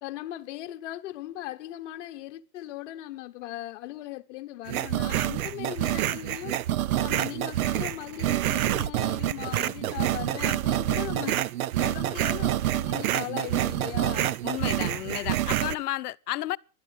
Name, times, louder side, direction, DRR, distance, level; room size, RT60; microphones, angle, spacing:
voice 1, 0.0-6.6 7.0-11.4 11.8-14.3, left 14 dB, 50° left, 1.1 m, -38 dB
sound 1, 4.7-15.8, right 13 dB, 60° right, 0.9 m, -27 dB
voice 2, 14.4-16.6, left 15 dB, 70° left, 0.8 m, -32 dB
17.0 x 12.0 x 6.2 m
supercardioid pair, 160°, 47 cm